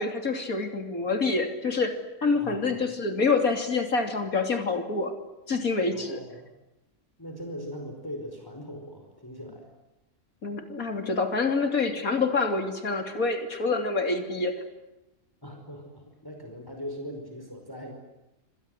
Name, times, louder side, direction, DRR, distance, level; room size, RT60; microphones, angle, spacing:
voice 1, 0.0-5.1 5.5-6.2 10.4-14.6, left 4 dB, 70° left, 6 dB, 3.5 m, -27 dB
voice 2, 2.3-2.7 5.9-6.5 7.2-9.7 15.4-17.9, equal, 15° left, 4 dB, 5.0 m, -40 dB
28.0 x 27.0 x 8.0 m, 0.98 s
omnidirectional pair, 1.5 m